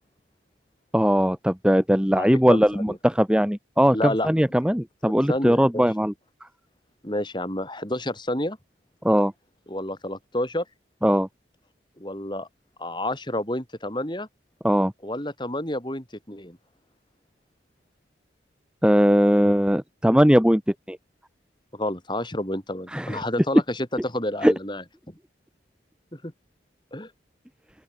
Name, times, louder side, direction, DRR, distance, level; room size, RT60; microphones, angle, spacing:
voice 1, 0.9-6.1 9.0-9.3 11.0-11.3 14.6-14.9 18.8-20.6 20.9-21.0 22.9-23.2 24.4-24.5, equal, 5° right, 1.4 m, -20 dB
voice 2, 2.1-3.0 3.9-4.3 5.0-5.8 7.0-8.6 9.7-10.6 12.0-12.5 12.8-14.3 15.0-16.6 21.7-25.1 26.1-26.3 26.9-27.1, left 1 dB, 25° left, 4.8 m, -30 dB
open air
head